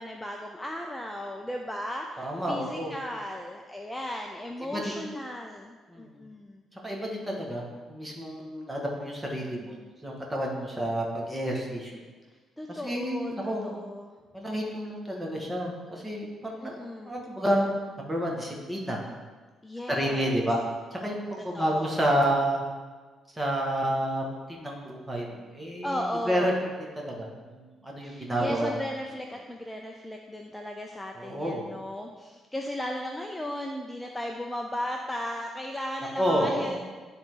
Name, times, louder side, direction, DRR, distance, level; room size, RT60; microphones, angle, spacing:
voice 1, 0.0-6.6 12.6-14.1 16.6-17.1 19.6-20.3 21.4-22.0 25.8-26.5 28.0-36.8, left 1 dB, 10° left, 2 dB, 0.6 m, -36 dB
voice 2, 2.2-3.0 4.7-4.9 5.9-6.2 6.8-7.6 7.9-9.8 10.0-11.9 12.7-13.7 14.3-16.8 17.0-19.0 19.9-20.6 20.9-22.6 23.3-24.2 24.5-26.5 27.0-28.7 31.2-31.6 36.2-36.8, equal, 15° right, -2 dB, 2.0 m, -29 dB
12.0 x 4.1 x 4.0 m, 1.4 s
cardioid pair, 90°, 0 cm